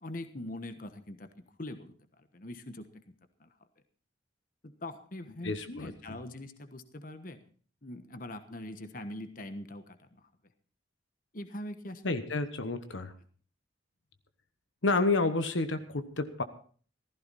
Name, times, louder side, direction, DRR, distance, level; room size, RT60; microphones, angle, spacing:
voice 1, 0.0-3.0 3.4-3.5 4.6-7.4 7.8-10.3 11.3-12.0, left 1 dB, 45° left, 9 dB, 1.2 m, -43 dB
voice 2, 5.4-5.9 12.0-13.1 14.8-16.4, left 3 dB, 75° left, 9 dB, 1.1 m, -30 dB
15.5 x 14.5 x 4.2 m, 0.43 s
head